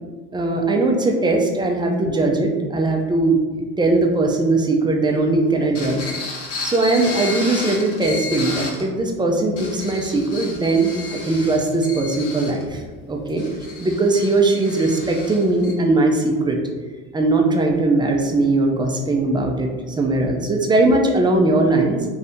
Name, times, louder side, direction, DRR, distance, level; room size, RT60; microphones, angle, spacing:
voice 1, 0.3-6.0 6.6-12.8 13.1-13.4 13.8-16.6 17.1-22.1, right 2 dB, 15° right, 1 dB, 0.4 m, -19 dB
sound 1, 5.8-8.9 9.4-15.7, left 3 dB, 70° left, 1.0 m, -32 dB
2.7 x 2.6 x 3.4 m, 1.3 s
cardioid pair, 110°, 33 cm